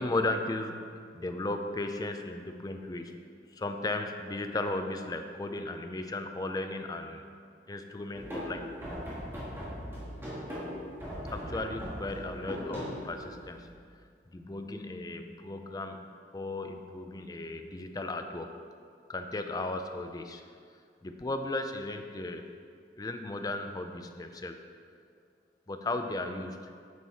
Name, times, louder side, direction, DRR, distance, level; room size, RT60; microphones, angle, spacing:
voice 1, 0.0-3.2 3.5-7.2 7.7-8.6 11.3-14.0 14.3-16.1 16.3-18.5 19.1-20.5 21.0-22.4 23.0-24.6 25.7-26.7, left 2 dB, 20° left, 6 dB, 0.4 m, -35 dB
sound 1, 8.1-13.7, equal, 15° right, 1.8 m, -39 dB
8.3 x 6.0 x 4.0 m, 2.2 s
head